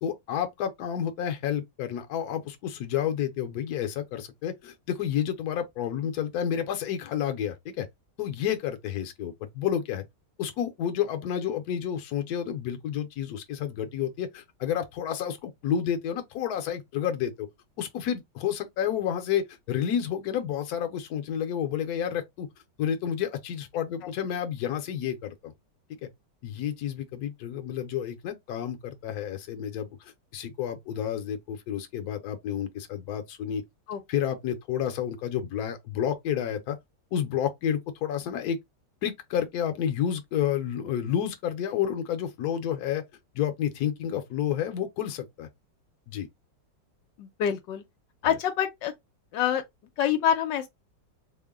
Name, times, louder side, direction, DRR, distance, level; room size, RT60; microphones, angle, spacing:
voice 1, 0.0-7.9 8.2-10.0 10.4-17.5 17.8-22.5 22.8-25.5 26.0-26.1 26.4-33.6 34.1-36.8 37.1-38.6 39.0-43.0 43.3-45.5 46.1-46.3, left 9 dB, 65° left, 1.1 m, -30 dB
voice 2, 47.2-47.8 48.2-48.9 49.3-49.6 50.0-50.7, left 9 dB, 80° left, 1.3 m, -26 dB
3.7 x 2.1 x 3.5 m
omnidirectional pair, 2.0 m